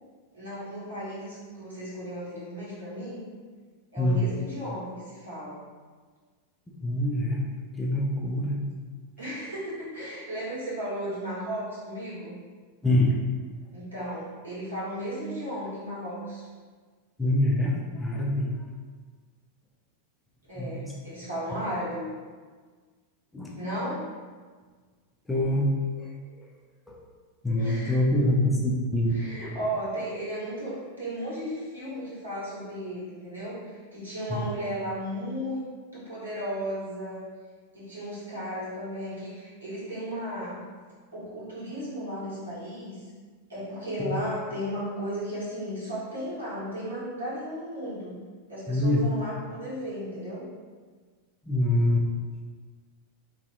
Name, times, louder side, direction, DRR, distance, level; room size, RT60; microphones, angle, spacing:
voice 1, 0.3-3.2 3.9-5.7 9.2-12.4 13.7-16.5 20.5-22.1 23.5-24.0 27.6-28.0 29.1-35.6 35.9-37.3 37.7-40.6 41.1-43.0 43.5-48.2 48.5-50.5, equal, 75° right, -9 dB, 1.3 m, -35 dB
voice 2, 6.8-7.5 7.8-8.7 12.8-13.1 17.2-18.5 20.6-20.9 23.3-23.5 25.3-26.1 26.9-27.0 27.4-29.1 34.3-34.4 48.7-49.0 51.5-52.0, left 1 dB, 10° left, -3 dB, 0.4 m, -25 dB
3.1 x 2.7 x 2.5 m, 1.5 s
figure-of-eight pair, 90°, 0 cm